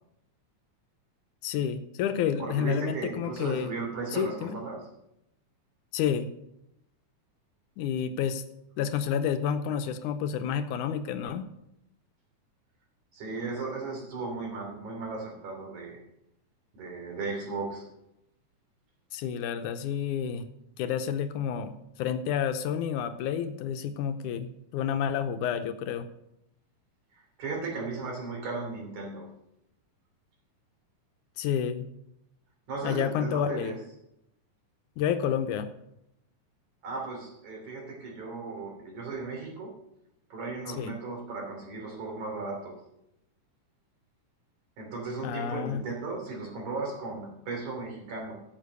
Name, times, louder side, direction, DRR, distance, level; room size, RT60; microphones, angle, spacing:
voice 1, 1.4-3.7 4.1-4.6 5.9-6.3 7.8-8.4 8.8-11.4 19.1-20.5 20.8-21.7 22.0-26.1 31.4-31.9 32.8-33.8 35.0-35.7 40.7-40.9 45.2-45.8, left 8 dB, 80° left, 9 dB, 2.1 m, -29 dB
voice 2, 2.4-4.9 13.1-16.0 16.7-17.9 27.1-29.4 32.7-33.8 36.8-39.8 40.3-42.8 44.8-48.4, right 3 dB, 65° right, 0 dB, 4.4 m, -36 dB
12.5 x 7.5 x 6.7 m, 0.82 s
omnidirectional pair, 3.7 m